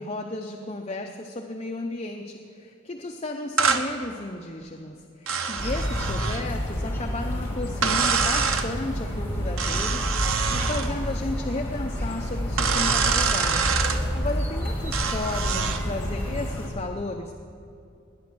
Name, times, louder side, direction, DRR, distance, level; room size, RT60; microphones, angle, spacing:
voice 1, 0.0-13.8 14.1-17.3, left 2 dB, 30° left, 2 dB, 0.6 m, -34 dB
sound 1, 3.6-3.9 5.3-6.5 7.8-8.7 9.6-10.9 12.6-14.0 14.9-15.8, right 5 dB, 75° right, 0.9 m, -25 dB
sound 2, 5.6-16.7, equal, 10° left, 2.1 m, -29 dB
20.0 x 9.6 x 6.2 m, 2.6 s
head